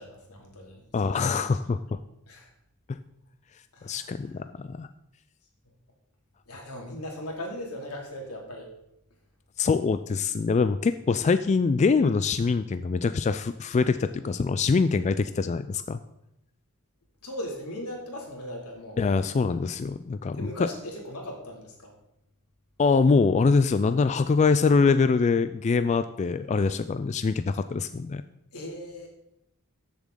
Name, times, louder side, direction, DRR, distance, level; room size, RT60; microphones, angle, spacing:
voice 1, 0.0-1.5 2.3-2.5 3.7-4.2 6.5-8.7 17.2-19.0 20.3-21.9 28.5-29.1, left 1 dB, 85° left, 0 dB, 2.7 m, -38 dB
voice 2, 0.9-2.0 2.9-3.0 3.8-4.9 9.6-16.0 19.0-20.7 22.8-28.2, left 4 dB, 30° left, 11 dB, 0.3 m, -24 dB
14.0 x 7.1 x 3.8 m, 0.83 s
head